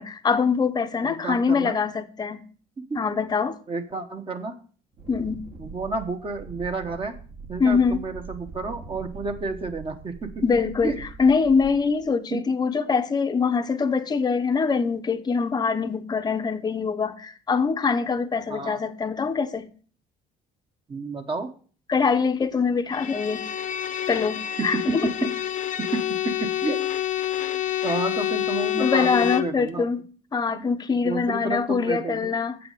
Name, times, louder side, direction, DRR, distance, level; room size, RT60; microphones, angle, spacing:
voice 1, 0.0-2.4 2.9-3.6 5.1-5.4 7.6-8.0 10.4-19.7 21.9-23.4 24.1-25.0 28.8-30.0 30.3-32.6, left 5 dB, 25° left, 0.7 m, -24 dB
voice 2, 1.0-1.8 2.8-3.0 3.7-4.5 5.6-7.1 7.5-10.4 10.8-11.0 12.3-12.4 18.5-18.8 20.9-21.5 24.6-25.5 25.8-26.8 27.8-29.9 30.5-30.6 31.0-32.3, right 3 dB, 30° right, 1.2 m, -30 dB
Wind, 4.9-12.1, right 5 dB, 60° right, 2.5 m, -42 dB
Bowed string instrument, 22.9-29.6, left 12 dB, 50° left, 0.8 m, -28 dB
7.7 x 5.9 x 6.6 m
cardioid pair, 110°, 17 cm